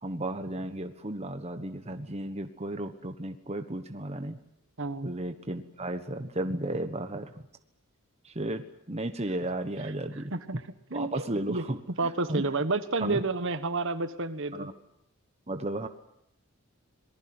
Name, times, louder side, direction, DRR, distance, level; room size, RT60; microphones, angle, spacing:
voice 1, 0.0-4.4 5.0-7.3 8.2-10.3 10.9-12.5 13.0-13.2 14.5-14.7 15.5-15.9, right 1 dB, 30° right, 7 dB, 1.2 m, -34 dB
voice 2, 4.8-5.1 9.8-10.6 10.9-11.6 12.0-14.7, right 3 dB, 55° right, 11 dB, 1.4 m, -31 dB
26.0 x 19.5 x 7.9 m, 0.80 s
head